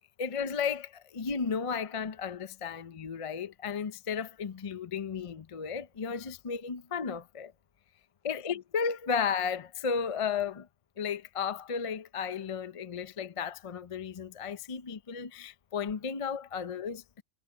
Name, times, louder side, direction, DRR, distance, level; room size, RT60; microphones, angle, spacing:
voice 1, 0.2-7.5 8.2-10.7 11.0-17.2, left 6 dB, 35° left, 0.6 m, -34 dB
omnidirectional pair, 1.3 m